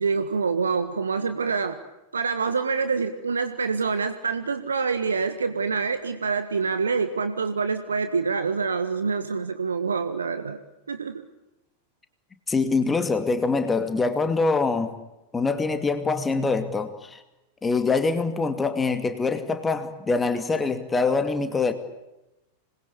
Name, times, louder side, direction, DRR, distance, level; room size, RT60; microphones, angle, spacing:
voice 1, 0.0-1.8 2.1-10.6 10.9-11.2, right 5 dB, 75° right, 10 dB, 1.6 m, -26 dB
voice 2, 12.5-14.9 15.3-17.2 17.6-21.7, left 4 dB, 15° left, 9 dB, 2.4 m, -24 dB
26.5 x 21.5 x 8.6 m, 0.96 s
figure-of-eight pair, 90°, 0 cm